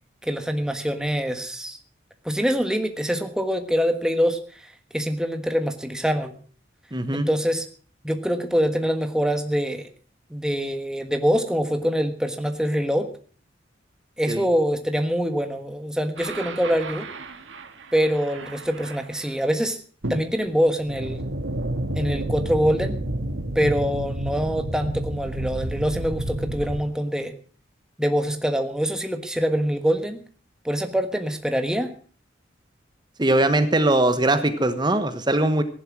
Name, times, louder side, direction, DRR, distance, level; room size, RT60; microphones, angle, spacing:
voice 1, 0.2-1.8 2.2-6.3 7.1-7.6 8.0-9.9 10.3-13.1 14.2-17.1 17.9-19.8 20.1-21.2 21.9-22.9 23.5-27.3 28.0-30.2 30.6-31.9, equal, 5° right, 6 dB, 1.4 m, -24 dB
voice 2, 6.9-7.3 14.3-14.4 33.2-35.6, right 1 dB, 20° right, 10 dB, 1.1 m, -21 dB
sound 1, 16.2-19.3 20.0-26.8, right 1 dB, 75° right, 1.6 m, -31 dB
15.5 x 11.0 x 6.0 m, 0.43 s
head